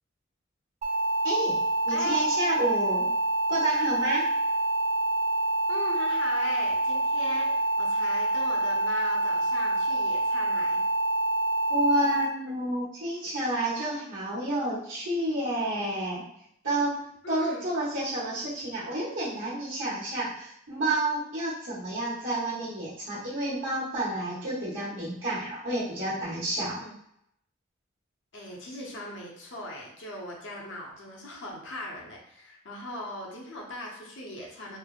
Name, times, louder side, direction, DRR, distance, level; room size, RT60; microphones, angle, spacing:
sound 1, 0.8-12.2, right 1 dB, 35° right, 0.4 m, -26 dB
voice 1, 1.2-3.1 3.5-4.2 11.7-16.2 16.6-17.0 17.3-26.8, right 1 dB, 70° right, -10 dB, 1.0 m, -30 dB
voice 2, 5.7-10.8 17.2-17.6 26.8-26.9 28.3-34.8, left 1 dB, 70° left, -2 dB, 0.7 m, -39 dB
3.2 x 2.0 x 2.3 m, 0.73 s
head